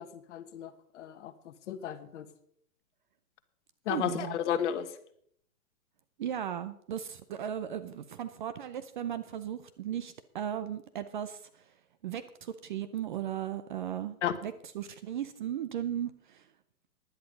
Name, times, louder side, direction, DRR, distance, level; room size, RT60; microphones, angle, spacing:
voice 1, 0.0-2.2 3.9-4.9 14.2-14.3, left 9 dB, 50° left, 10 dB, 1.3 m, -33 dB
voice 2, 3.9-4.4 6.2-11.7 12.0-14.2 14.4-16.5, right 10 dB, 35° right, 12 dB, 0.5 m, -36 dB
10.5 x 10.5 x 5.2 m, 0.67 s
hypercardioid pair, 140°, 46 cm